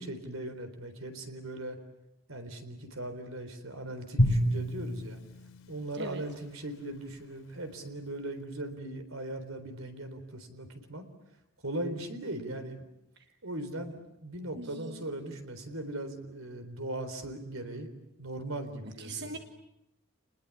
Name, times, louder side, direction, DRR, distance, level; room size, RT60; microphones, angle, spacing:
voice 1, 0.0-1.8 2.3-5.2 5.7-11.1 11.6-12.8 13.4-17.9 18.2-19.4, right 1 dB, 85° right, 8 dB, 3.9 m, -39 dB
Drum, 4.2-6.6, equal, 85° left, 3.8 m, -29 dB
voice 2, 14.5-15.0 19.0-19.4, right 3 dB, 55° right, 5 dB, 1.5 m, -41 dB
29.0 x 20.5 x 8.6 m, 0.88 s
head